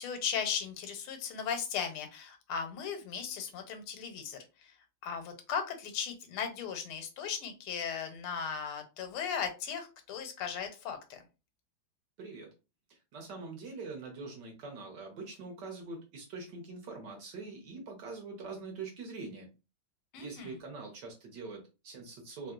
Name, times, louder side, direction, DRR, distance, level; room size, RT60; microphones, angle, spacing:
voice 1, 0.0-4.8 5.0-11.2 20.1-20.6, left 7 dB, 85° left, 6 dB, 1.6 m, -37 dB
voice 2, 13.1-19.5 20.2-22.5, right 3 dB, 65° right, 2 dB, 1.2 m, -44 dB
3.5 x 2.6 x 2.3 m, 0.29 s
omnidirectional pair, 2.3 m